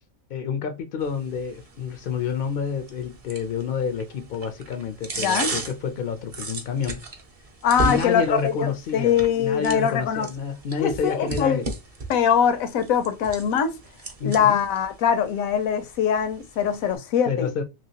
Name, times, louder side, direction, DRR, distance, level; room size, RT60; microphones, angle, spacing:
voice 1, 0.3-7.0 7.8-11.7 14.2-14.6 17.3-17.6, left 6 dB, 65° left, 0.5 m, -29 dB
sound 1, 1.0-17.0, right 3 dB, 40° right, 0.5 m, -37 dB
voice 2, 5.2-5.5 7.6-10.3 10.8-11.6 12.1-13.7 14.2-17.5, left 8 dB, 85° left, 1.1 m, -22 dB
3.0 x 2.9 x 2.8 m
omnidirectional pair, 1.4 m